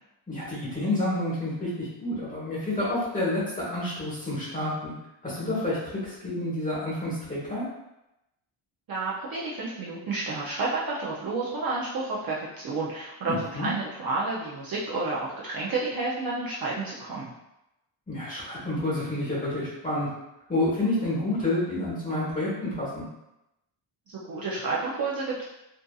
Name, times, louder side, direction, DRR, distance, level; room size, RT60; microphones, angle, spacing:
voice 1, 0.3-4.9 5.2-7.6 13.3-13.7 18.1-20.1 20.5-23.0, left 1 dB, 15° left, -8 dB, 1.0 m, -29 dB
voice 2, 8.9-17.3 24.1-25.4, right 3 dB, 50° right, -6 dB, 0.5 m, -30 dB
2.6 x 2.4 x 2.3 m, 0.89 s
wide cardioid pair, 175°, 48 cm